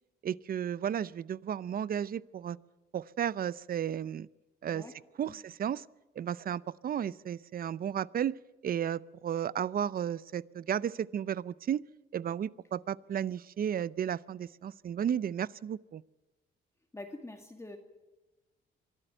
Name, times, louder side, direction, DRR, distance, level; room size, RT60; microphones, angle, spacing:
voice 1, 0.2-2.6 2.9-4.3 4.6-4.8 5.2-5.9 6.2-8.4 8.6-11.8 12.1-16.0, right 9 dB, 45° right, 21 dB, 0.6 m, -33 dB
voice 2, 4.6-4.9 5.3-5.4 16.9-17.8, left 2 dB, 15° left, 3 dB, 2.2 m, -45 dB
24.0 x 13.0 x 9.0 m, 1.1 s
cardioid pair, 90°, 20 cm